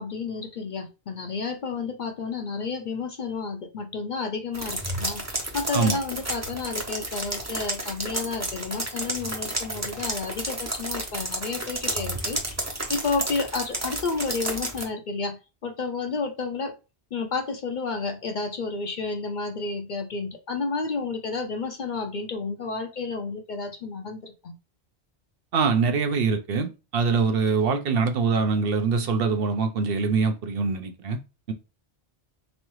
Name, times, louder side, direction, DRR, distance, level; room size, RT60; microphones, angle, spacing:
voice 1, 0.0-16.8 17.1-24.5, left 4 dB, 55° left, 0.6 m, -31 dB
sound 1, 4.5-14.8, right 1 dB, 15° right, 0.7 m, -31 dB
voice 2, 25.5-31.2 31.5-31.6, right 5 dB, 65° right, 0.7 m, -24 dB
3.6 x 3.1 x 3.1 m
omnidirectional pair, 1.1 m